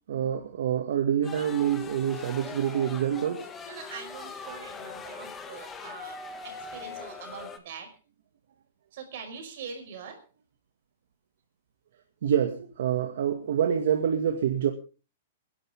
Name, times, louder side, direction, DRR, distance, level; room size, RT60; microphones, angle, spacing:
voice 1, 0.1-3.5 12.2-14.7, right 9 dB, 65° right, 4 dB, 2.2 m, -26 dB
sound 1, 1.2-7.6, left 5 dB, 10° left, 1.5 m, -41 dB
voice 2, 3.6-7.9 8.9-10.2, right 6 dB, 50° right, 5 dB, 5.4 m, -43 dB
26.5 x 11.5 x 3.7 m, 0.34 s
hypercardioid pair, 170°, 0 cm